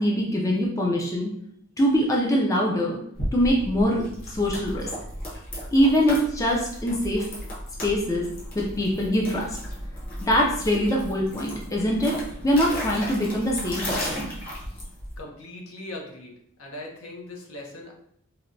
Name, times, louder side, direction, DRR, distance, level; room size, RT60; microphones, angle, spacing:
voice 1, 0.0-1.3 1.8-3.0 3.3-4.9 5.7-7.3 7.8-8.3 8.5-9.6 10.2-12.2 12.4-14.3, equal, 15° left, -2 dB, 0.4 m, -23 dB
sound 1, 3.1-15.2, equal, 45° left, 1.0 m, -35 dB
voice 2, 15.2-16.3 16.6-17.9, left 1 dB, 70° left, 1 dB, 0.7 m, -39 dB
4.1 x 2.1 x 2.5 m, 0.69 s
head